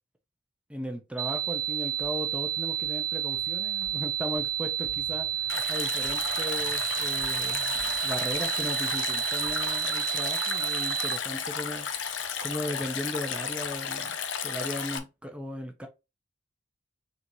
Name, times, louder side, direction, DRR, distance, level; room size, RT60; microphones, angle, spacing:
voice 1, 0.7-7.8 8.0-11.9 12.4-15.9, equal, 5° right, 0.7 m, -37 dB
sound 1, 1.2-11.2, right 11 dB, 40° right, 0.5 m, -30 dB
sound 2, 1.6-10.4, left 1 dB, 45° left, 1.2 m, -55 dB
Stream, 5.5-15.0, left 7 dB, 65° left, 0.6 m, -33 dB
4.0 x 3.5 x 3.0 m
head